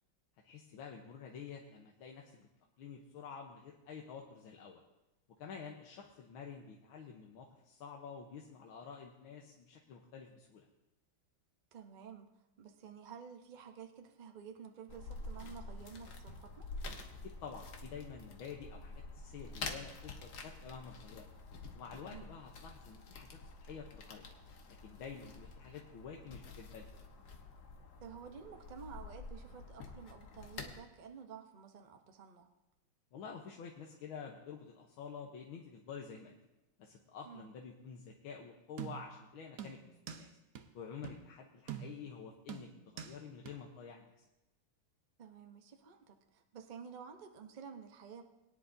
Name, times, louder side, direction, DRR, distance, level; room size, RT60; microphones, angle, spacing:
voice 1, 0.4-2.5 2.8-4.8 5.4-10.7 17.2-21.3 21.7-23.3 23.6-24.3 24.8-26.9 33.1-36.4 36.8-40.4 40.7-44.1, left 6 dB, 90° left, 0 dB, 1.8 m, -49 dB
voice 2, 11.7-12.3 12.6-16.7 22.1-22.3 28.0-32.5 37.3-37.5 45.2-48.2, right 6 dB, 40° right, 4 dB, 0.6 m, -51 dB
sound 1, 14.9-30.8, left 3 dB, 55° left, 1.6 m, -48 dB
sound 2, 38.8-39.2 39.6-40.3 40.6-40.7 41.0-41.2 41.7-42.1 42.5-43.2 43.5-43.6, right 9 dB, 60° right, 0.9 m, -45 dB
22.0 x 10.0 x 2.7 m, 0.97 s
omnidirectional pair, 2.2 m